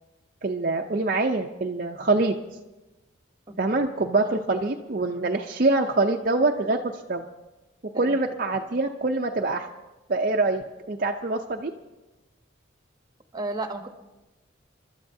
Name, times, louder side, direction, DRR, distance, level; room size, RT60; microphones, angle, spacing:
voice 1, 0.4-2.3 3.6-7.3 8.0-9.7 10.1-11.7, right 2 dB, 45° right, 3 dB, 0.6 m, -25 dB
voice 2, 13.3-13.9, right 2 dB, 20° right, 6 dB, 1.0 m, -33 dB
29.0 x 12.5 x 2.7 m, 1.1 s
head